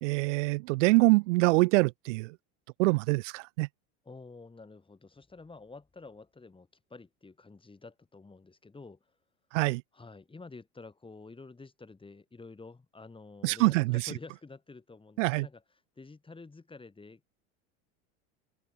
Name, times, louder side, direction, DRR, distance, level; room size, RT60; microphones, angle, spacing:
voice 1, 0.0-2.3 2.8-3.7 9.5-9.8 13.4-14.1 15.2-15.5, right 23 dB, 70° right, 0.8 m, -25 dB
voice 2, 4.0-9.0 9.9-15.6 16.0-17.3, left 3 dB, 15° left, 6.4 m, -49 dB
hypercardioid pair, 100°, 37 cm